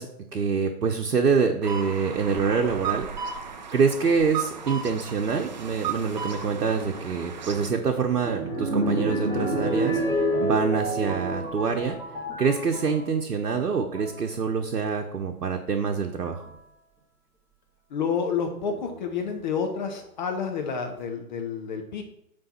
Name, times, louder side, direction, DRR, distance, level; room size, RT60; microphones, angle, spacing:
voice 1, 0.0-3.1 3.7-12.0 12.4-16.4, right 5 dB, 70° right, 3 dB, 1.0 m, -26 dB
sound 1, 1.6-7.7, right 7 dB, 30° right, 0.5 m, -35 dB
sound 2, 7.4-13.0 13.7-14.2 15.4-15.5 16.2-16.5 18.7-19.3 20.0-20.1 20.3-20.4, right 1 dB, 5° right, 1.9 m, -29 dB
voice 2, 17.9-22.0, left 6 dB, 30° left, 3 dB, 0.8 m, -29 dB
8.9 x 3.5 x 5.7 m, 0.81 s
figure-of-eight pair, 125°, 47 cm